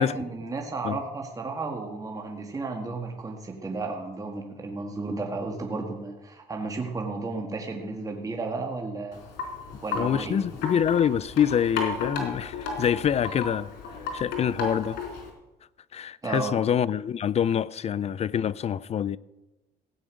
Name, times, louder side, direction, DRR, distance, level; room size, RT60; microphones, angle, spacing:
voice 1, 0.0-9.2 9.8-10.4 16.2-16.6, right 3 dB, 20° right, 1.9 m, -33 dB
Wind chime, 9.1-15.3, left 4 dB, 85° left, 3.9 m, -34 dB
voice 2, 9.9-13.7 14.1-15.0 15.9-19.2, left 9 dB, 40° left, 0.4 m, -25 dB
16.0 x 9.1 x 6.4 m
cardioid pair, 110°, 17 cm